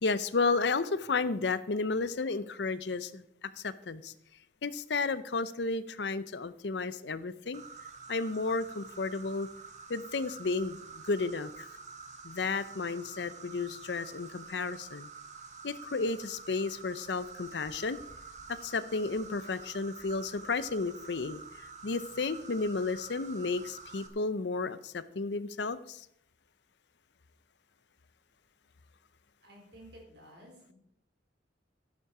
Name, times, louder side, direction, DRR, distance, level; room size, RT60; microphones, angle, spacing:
voice 1, 0.0-4.1 4.6-7.6 8.1-9.5 9.9-11.7 12.2-15.1 15.6-18.0 18.5-26.1, left 4 dB, 70° left, 15 dB, 0.7 m, -33 dB
Insect, 7.5-24.1, right 4 dB, 40° right, 1.6 m, -48 dB
voice 2, 29.4-30.7, equal, 65° right, 0 dB, 4.4 m, -53 dB
12.0 x 11.5 x 4.9 m, 0.76 s
head